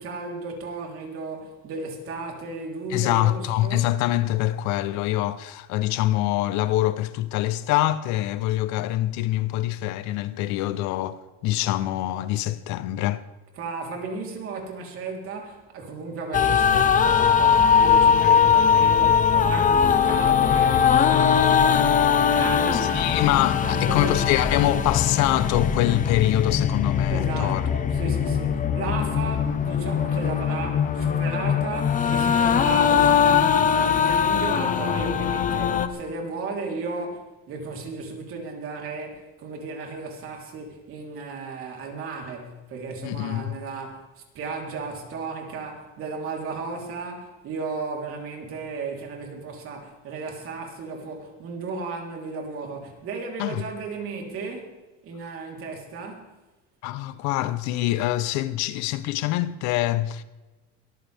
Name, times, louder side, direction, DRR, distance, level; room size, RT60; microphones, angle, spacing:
voice 1, 0.0-3.9 13.6-23.3 23.6-24.6 27.1-54.8 55.0-56.3, right 4 dB, 50° right, 3.8 m, -35 dB
voice 2, 2.9-13.2 22.7-27.6 43.0-43.6 53.4-53.6 56.8-60.2, left 15 dB, 70° left, 0.9 m, -25 dB
sound 1, 16.3-35.9, left 7 dB, 25° left, 1.0 m, -21 dB
22.0 x 14.5 x 3.6 m
cardioid pair, 155°, 29 cm